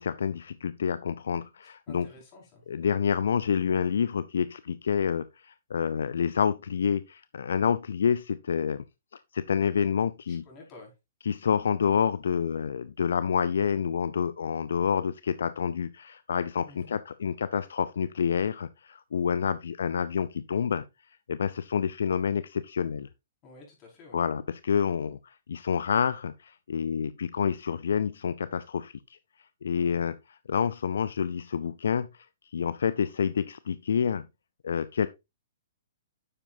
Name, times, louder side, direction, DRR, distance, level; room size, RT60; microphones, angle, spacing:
voice 1, 0.0-2.1 2.7-8.8 9.3-10.4 11.3-20.8 21.3-23.1 24.1-28.9 29.6-32.1 32.5-34.2 34.6-35.1, left 7 dB, 75° left, 0.5 m, -28 dB
voice 2, 1.6-2.6 10.3-10.9 16.6-17.0 23.4-24.2 29.7-30.1, left 2 dB, 35° left, 5.2 m, -51 dB
9.7 x 7.3 x 2.7 m
hypercardioid pair, 130°, 0 cm